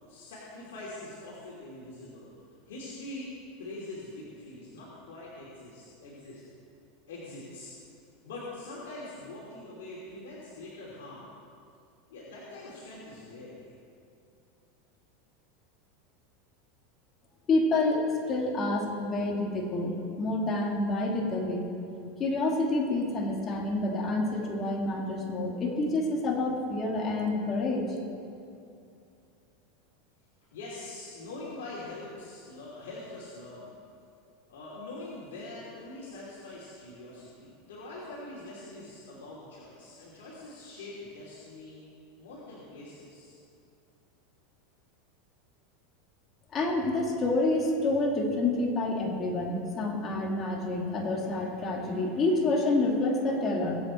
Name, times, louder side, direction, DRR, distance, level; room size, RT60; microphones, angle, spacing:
voice 1, 0.0-2.3 2.7-3.3 3.6-6.4 7.1-7.7 8.2-11.3 12.1-13.7 30.5-33.7 34.5-41.8 42.2-43.4, left 2 dB, 85° left, -6 dB, 2.9 m, -43 dB
voice 2, 17.5-21.6 22.2-27.9 46.5-53.8, left 2 dB, 30° left, 0 dB, 2.4 m, -28 dB
22.0 x 8.0 x 4.5 m, 2.5 s
supercardioid pair, 130°, 0 cm